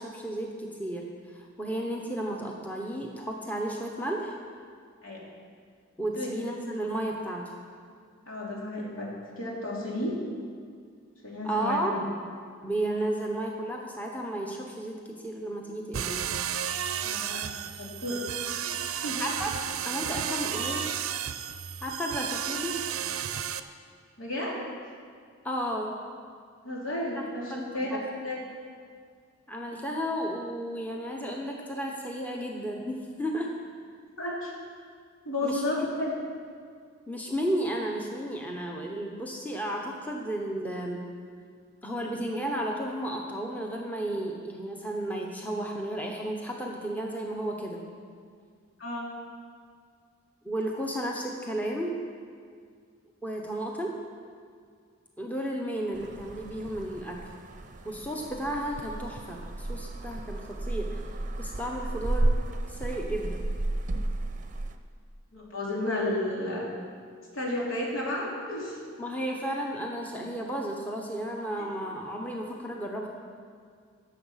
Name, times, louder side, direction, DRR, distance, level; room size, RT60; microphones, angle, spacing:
voice 1, 0.0-4.3 6.0-7.5 11.4-11.9 12.6-14.9 15.2-16.2 18.8-19.5 19.8-20.9 21.8-22.8 25.4-26.0 27.5-28.0 29.5-33.6 35.4-35.6 37.1-41.1 41.8-47.8 50.4-51.9 53.2-54.0 55.2-57.2 57.8-61.0 61.4-62.3 62.7-63.4 69.0-73.1, right 1 dB, 10° left, 0 dB, 0.9 m, -33 dB
voice 2, 8.3-9.1 9.4-10.2 11.2-12.0 17.0-17.5 17.8-18.3 19.0-19.2 24.2-24.6 26.6-28.0 28.2-28.4 34.2-34.5 35.2-36.2 48.8-49.1 65.3-66.7 67.3-68.8, left 1 dB, 75° left, -4 dB, 3.0 m, -32 dB
sound 1, 15.9-23.6, right 9 dB, 90° right, 0.6 m, -33 dB
sound 2, 55.9-64.8, right 1 dB, 40° right, 0.7 m, -33 dB
17.0 x 7.1 x 5.7 m, 2.1 s
head